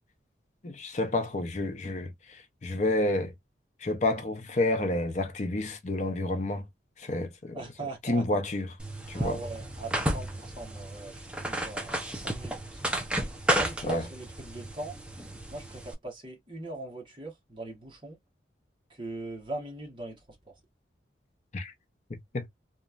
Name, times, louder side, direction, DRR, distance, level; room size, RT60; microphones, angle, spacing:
voice 1, 0.6-3.3 3.8-6.6 7.0-7.6 8.0-8.7 9.1-9.4 13.8-14.0 21.5-21.7 22.1-22.5, left 2 dB, 40° left, 0.6 m, -29 dB
voice 2, 7.5-8.3 9.1-12.9 13.5-14.9 15.5-18.2 18.9-20.2 20.5-20.6, right 2 dB, 25° right, 1.1 m, -40 dB
sound 1, 8.8-15.9, right 1 dB, 5° right, 0.5 m, -33 dB
3.0 x 2.3 x 2.4 m
head